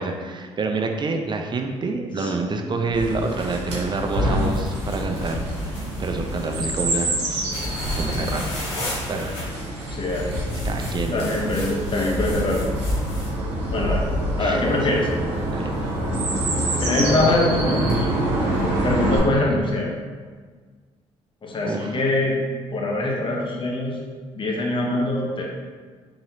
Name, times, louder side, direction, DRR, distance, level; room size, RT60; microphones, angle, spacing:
voice 1, 0.0-7.5 7.9-8.5 9.1-9.3 10.6-11.3 14.4-14.6 14.9-15.1 15.5-15.6 19.3-19.7 21.6-22.0, right 3 dB, 30° right, 4 dB, 0.5 m, -28 dB
Chirp tweet, 2.9-19.2, right 1 dB, 85° right, 0.8 m, -26 dB
sound 1, 4.4-6.7 7.5-9.4 10.1-13.4, left 1 dB, 85° left, 0.9 m, -31 dB
voice 2, 9.9-10.4 11.1-12.6 13.7-14.0 14.4-15.1 16.8-18.1 18.8-19.9 21.4-22.4 22.7-24.0 24.3-25.4, left 2 dB, 35° left, -2 dB, 0.8 m, -23 dB
4.0 x 2.9 x 2.7 m, 1.6 s
hypercardioid pair, 50°, 14 cm